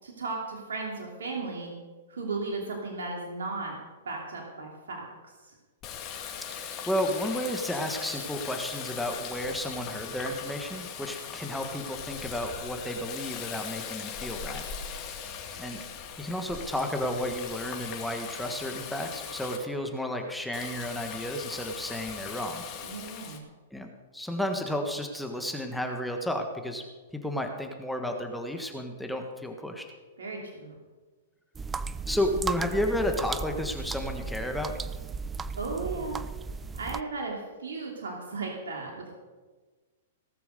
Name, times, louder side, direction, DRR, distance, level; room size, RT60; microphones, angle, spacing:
voice 1, 0.0-1.7 2.1-3.7 4.0-5.0 22.8-23.4 30.2-30.7 35.6-36.2 36.8-39.2, right 3 dB, 80° right, -1 dB, 2.9 m, -35 dB
Water tap faucet, 5.8-19.6 20.5-23.4, left 7 dB, 35° left, 2.4 m, -39 dB
voice 2, 6.5-14.6 15.6-15.8 16.2-22.7 23.7-23.9 24.1-26.8 27.1-29.8 32.1-34.7, left 1 dB, ahead, 3 dB, 1.5 m, -32 dB
sound 1, 31.6-37.0, right 5 dB, 15° right, 0.4 m, -35 dB
18.0 x 6.9 x 6.7 m, 1.3 s
hypercardioid pair, 120°, 0 cm